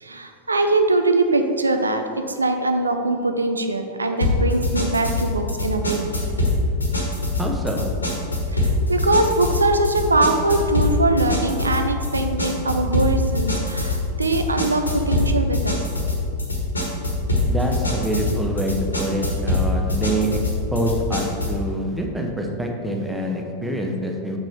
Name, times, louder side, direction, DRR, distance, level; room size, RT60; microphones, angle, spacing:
voice 1, 0.0-6.3 8.5-15.8, right 2 dB, 80° right, 6 dB, 0.6 m, -22 dB
sound 1, 4.2-21.6, left 2 dB, 80° left, 1.4 m, -23 dB
voice 2, 7.4-7.9 17.5-24.4, right 1 dB, 5° right, 1 dB, 1.0 m, -26 dB
7.0 x 6.1 x 4.2 m, 2.4 s
figure-of-eight pair, 90°, 0 cm